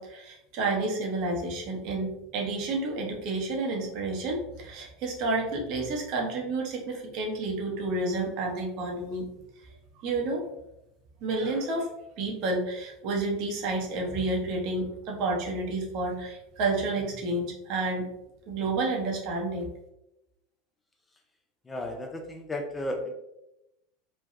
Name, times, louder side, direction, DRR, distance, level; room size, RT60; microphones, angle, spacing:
voice 1, 0.0-9.3 10.0-10.4 11.2-11.9 12.2-18.1 18.5-19.7, right 2 dB, 55° right, 0 dB, 0.8 m, -30 dB
voice 2, 21.6-23.1, left 1 dB, 15° left, 3 dB, 0.4 m, -34 dB
3.2 x 2.2 x 2.5 m, 0.87 s
supercardioid pair, 115°, 0 cm